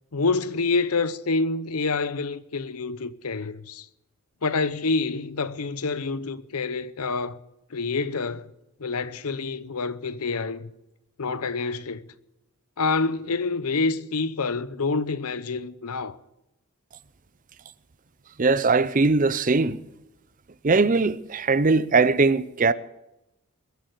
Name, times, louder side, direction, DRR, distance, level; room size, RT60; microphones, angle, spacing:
voice 1, 0.1-3.9 4.4-7.4 7.7-8.5 8.8-10.7 11.2-12.0 12.8-16.2, left 4 dB, 85° left, 0.8 m, -27 dB
voice 2, 18.4-19.8 20.6-22.7, right 3 dB, 35° right, 0.6 m, -20 dB
21.5 x 8.2 x 8.0 m
head